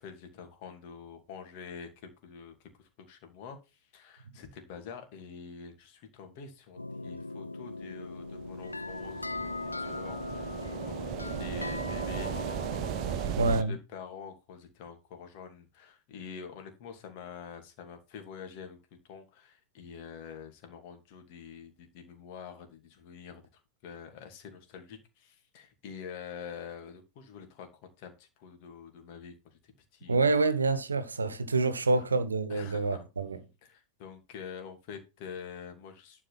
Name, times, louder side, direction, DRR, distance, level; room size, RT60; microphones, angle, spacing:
voice 1, 0.0-9.5 9.8-12.3 13.1-18.8 19.0-30.4 32.0-32.1 32.5-33.1 33.6-36.2, left 6 dB, 45° left, 2.7 m, -46 dB
sound 1, 6.8-13.3, left 2 dB, 85° left, 0.5 m, -39 dB
sound 2, 8.4-13.6, right 11 dB, 40° right, 0.8 m, -37 dB
voice 2, 13.4-13.7 30.1-33.4, right 3 dB, 75° right, 1.2 m, -27 dB
11.5 x 4.7 x 6.1 m
figure-of-eight pair, 90°, 0 cm